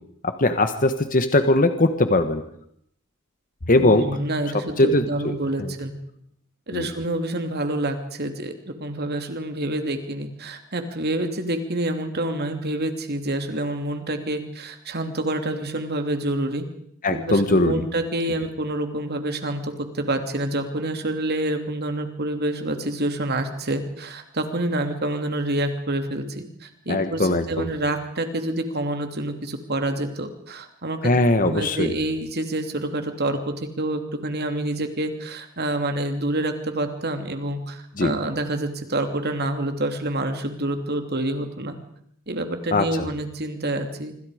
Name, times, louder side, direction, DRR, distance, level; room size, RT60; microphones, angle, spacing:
voice 1, 0.2-2.4 3.7-4.1 4.8-5.0 5.6-5.7 6.7-6.9 17.0-17.8 26.9-27.7 31.0-31.9 38.0-38.1 42.7-42.9, left 2 dB, 40° left, 9 dB, 1.4 m, -20 dB
voice 2, 3.8-5.9 6.7-16.6 17.1-31.1 31.4-41.8 42.3-44.2, right 1 dB, 45° right, 6 dB, 2.9 m, -27 dB
26.0 x 25.5 x 5.1 m, 0.69 s
head